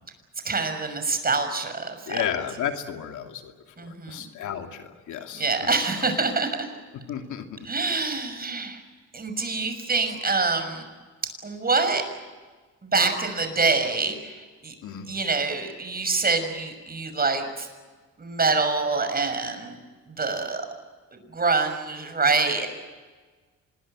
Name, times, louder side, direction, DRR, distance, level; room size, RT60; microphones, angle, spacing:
voice 1, 0.4-2.2 3.8-4.3 5.3-6.7 7.6-8.8 9.1-10.9 11.4-12.0 12.8-14.7 15.1-17.7 18.2-19.8 20.1-20.6 21.3-22.7, right 4 dB, 30° right, 7 dB, 6.3 m, -25 dB
voice 2, 2.1-3.5 3.8-6.1 7.1-7.7 14.8-15.1, left 9 dB, 80° left, 4 dB, 2.7 m, -33 dB
26.0 x 21.5 x 8.9 m, 1.4 s
cardioid pair, 90°, 30 cm